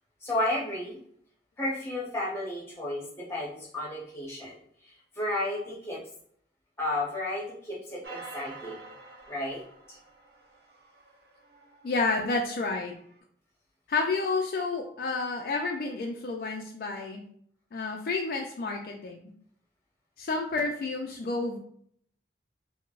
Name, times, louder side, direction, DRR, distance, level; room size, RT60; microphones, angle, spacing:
voice 1, 0.2-1.0 1.6-4.5 4.8-6.0 6.8-8.8 9.3-10.0, left 1 dB, 15° left, -5 dB, 0.8 m, -33 dB
sound 1, 8.0-12.5 13.1-13.2, right 3 dB, 65° right, 0.5 m, -48 dB
voice 2, 11.8-12.9 13.9-17.2 17.7-19.3 20.2-21.6, left 3 dB, 50° left, 1 dB, 0.3 m, -30 dB
3.8 x 2.0 x 2.4 m, 0.64 s
head